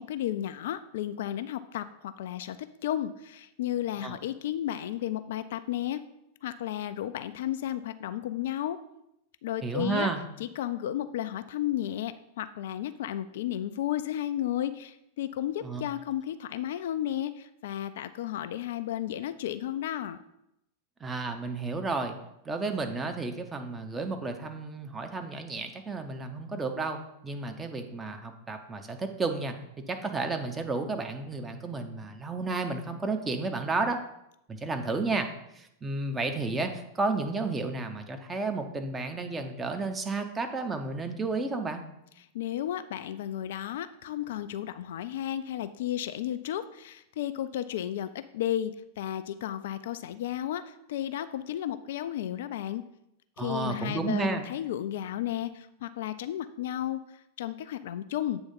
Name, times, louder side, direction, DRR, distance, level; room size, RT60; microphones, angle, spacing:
voice 1, 0.0-6.0 6.4-8.8 9.4-10.1 10.4-20.2 42.3-52.8 53.4-58.4, left 11 dB, 55° left, 12 dB, 0.3 m, -33 dB
voice 2, 9.6-10.2 15.6-15.8 21.0-22.2 22.4-29.6 29.9-34.0 34.5-35.3 35.5-41.8 53.4-54.5, right 3 dB, 15° right, 5 dB, 0.8 m, -32 dB
8.1 x 3.5 x 5.3 m, 0.82 s
figure-of-eight pair, 90°, 0 cm